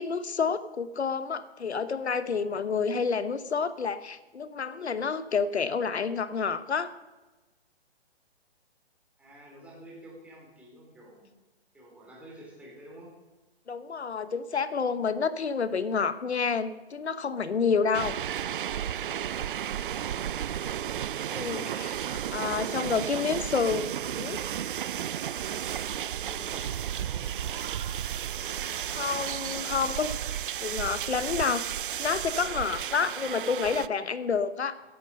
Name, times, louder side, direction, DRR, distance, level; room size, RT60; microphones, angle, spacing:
voice 1, 0.0-6.9 13.7-18.2 21.3-24.4 29.0-30.2 30.6-31.7 32.0-34.9, left 5 dB, 90° left, 14 dB, 1.1 m, -29 dB
voice 2, 9.2-11.3 11.7-13.1 22.4-23.6 26.1-27.8 28.1-28.9 29.4-30.1 34.7-34.9, right 1 dB, 5° right, -4 dB, 3.3 m, -50 dB
sound 1, 17.9-33.9, right 10 dB, 55° right, 0.5 m, -33 dB
15.0 x 10.5 x 5.4 m, 1.2 s
hypercardioid pair, 150°, 32 cm